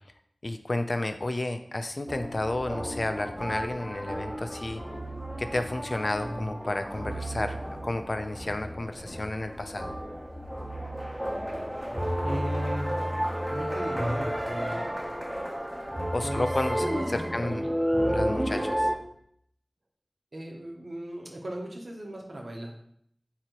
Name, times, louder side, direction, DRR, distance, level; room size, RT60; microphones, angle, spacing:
voice 1, 0.4-4.8 5.4-9.9 16.1-17.6 18.1-18.9, left 2 dB, 65° left, 8 dB, 0.4 m, -32 dB
sound 1, 2.1-19.0, equal, 15° right, 0.7 m, -32 dB
voice 2, 12.2-13.0 13.5-15.0 16.2-16.5 16.8-17.7 20.3-22.8, right 1 dB, 85° right, -1 dB, 0.8 m, -37 dB
3.9 x 2.8 x 4.5 m, 0.67 s
wide cardioid pair, 45°, 0 cm